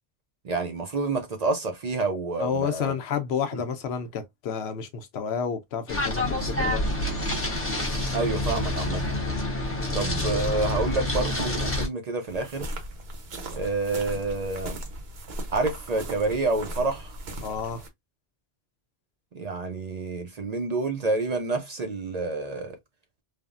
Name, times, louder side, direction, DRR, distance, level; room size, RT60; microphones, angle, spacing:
voice 1, 0.4-2.9 8.1-9.0 9.9-12.8 13.5-14.8 15.5-17.2 19.3-22.8, right 3 dB, 50° right, 0.5 m, -28 dB
voice 2, 2.4-6.9 9.8-10.5 17.4-17.8, left 7 dB, 85° left, 0.9 m, -31 dB
sound 1, 5.9-11.9, left 1 dB, 15° left, 0.5 m, -27 dB
sound 2, 12.3-17.9, right 1 dB, 75° right, 1.0 m, -37 dB
3.4 x 2.0 x 2.4 m
omnidirectional pair, 1.1 m